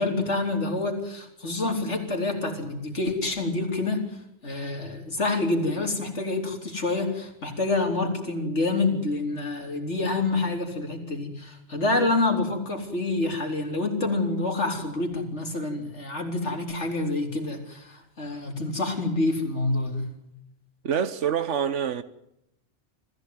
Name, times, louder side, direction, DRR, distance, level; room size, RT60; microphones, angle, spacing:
voice 1, 0.0-4.0 4.4-20.1, left 2 dB, 75° left, 4.3 m, -27 dB
voice 2, 20.8-22.0, right 8 dB, 90° right, 1.4 m, -26 dB
25.5 x 15.5 x 9.4 m
omnidirectional pair, 1.2 m